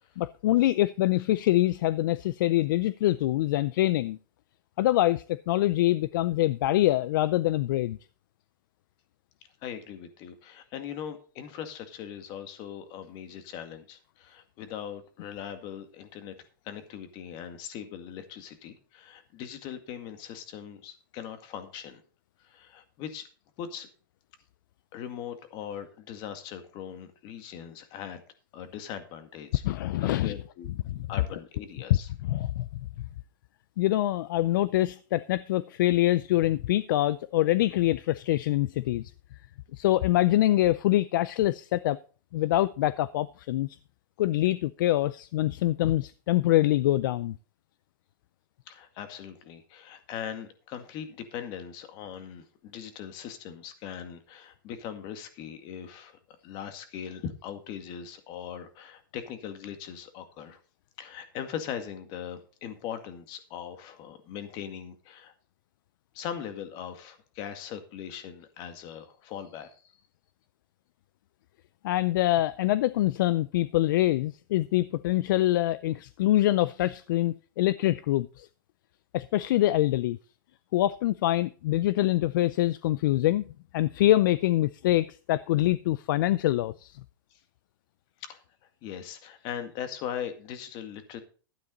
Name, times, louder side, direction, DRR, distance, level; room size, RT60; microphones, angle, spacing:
voice 1, 0.2-4.2 4.8-8.0 29.6-30.3 30.9-31.1 31.9-32.7 33.8-39.0 39.8-42.0 42.3-43.8 44.2-47.4 71.8-78.5 79.1-80.2 80.7-83.4 83.7-87.0, left 15 dB, 65° left, 17 dB, 0.5 m, -25 dB
voice 2, 9.6-16.3 16.6-22.0 22.4-23.2 23.6-23.9 24.9-28.2 28.5-29.6 30.0-30.7 31.1-32.1 48.7-60.6 61.0-65.3 66.1-69.8 88.2-88.4 88.8-91.2, left 9 dB, 40° left, 8 dB, 2.0 m, -40 dB
12.5 x 9.7 x 4.0 m, 0.38 s
supercardioid pair, 145°, 12 cm